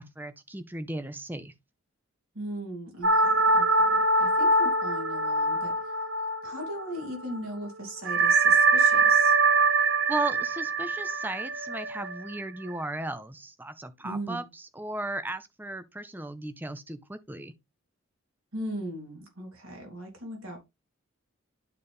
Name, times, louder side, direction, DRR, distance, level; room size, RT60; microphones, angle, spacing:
voice 1, 0.0-1.5 10.1-17.5, right 2 dB, 10° right, 0.6 m, -36 dB
voice 2, 2.3-5.9 6.4-9.4 14.0-14.4 18.5-20.6, right 1 dB, 80° right, 3.4 m, -38 dB
sound 1, 3.0-7.0 7.3-7.4 8.0-12.7, right 3 dB, 55° right, 0.7 m, -23 dB
11.5 x 4.1 x 3.5 m
head